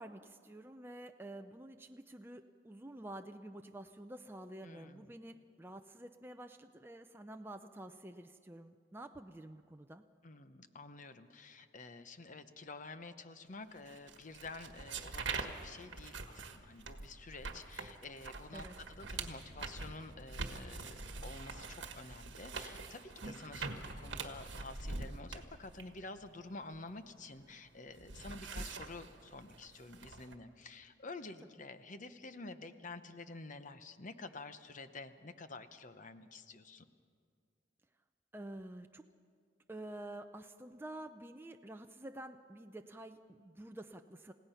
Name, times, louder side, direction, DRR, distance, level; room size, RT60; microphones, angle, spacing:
voice 1, 0.0-10.0 18.5-18.8 38.3-39.0 39.7-44.3, right 1 dB, 10° right, 5 dB, 0.5 m, -49 dB
voice 2, 4.6-5.1 10.2-36.9, left 3 dB, 40° left, 10 dB, 0.8 m, -50 dB
sound 1, 13.9-27.4 27.7-30.4, right 4 dB, 60° right, 1.5 m, -44 dB
29.5 x 16.5 x 5.7 m, 2.2 s
head